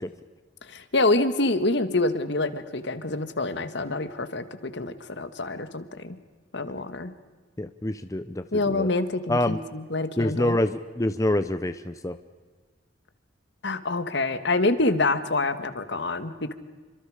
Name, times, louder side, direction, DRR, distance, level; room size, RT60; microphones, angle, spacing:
voice 1, 0.7-6.2 6.5-7.1 8.5-10.6 13.6-16.5, left 2 dB, 65° left, 11 dB, 1.7 m, -26 dB
voice 2, 7.6-8.9 9.3-9.6 10.2-12.2, left 1 dB, 15° left, 10 dB, 0.7 m, -26 dB
29.0 x 25.5 x 5.0 m, 1.4 s
head